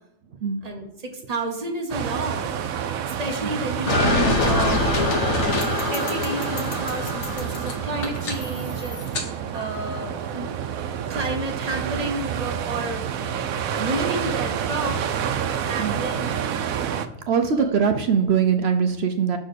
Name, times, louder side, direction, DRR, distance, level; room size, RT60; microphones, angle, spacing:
voice 1, 0.6-2.7 3.0-4.0 4.5-4.9 5.9-9.3 9.5-10.5 11.1-13.0 13.8-15.0 15.7-16.5 16.8-16.9 17.5-17.7, right 2 dB, 30° right, 2 dB, 1.1 m, -31 dB
sound 1, 1.9-17.1, right 8 dB, 85° right, 1.0 m, -29 dB
sound 2, 3.9-9.3, left 2 dB, 75° left, 1.5 m, -24 dB
voice 2, 17.3-19.4, right 6 dB, 60° right, 7 dB, 0.7 m, -21 dB
6.3 x 4.1 x 6.5 m, 0.90 s
omnidirectional pair, 1.4 m